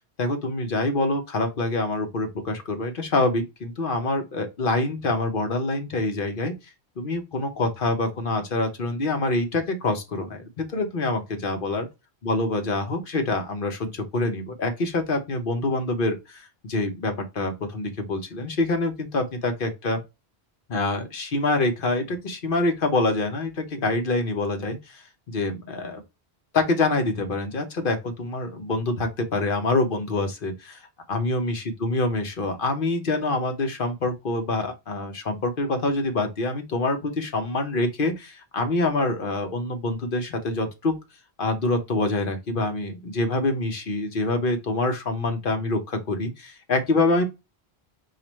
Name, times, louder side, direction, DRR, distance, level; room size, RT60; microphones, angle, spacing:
voice 1, 0.2-6.5 7.0-11.9 12.2-20.0 20.7-25.0 25.3-26.0 26.5-30.8 31.1-40.9 41.4-47.2, left 2 dB, 55° left, 1.0 m, -26 dB
4.8 x 2.5 x 2.9 m
omnidirectional pair, 1.1 m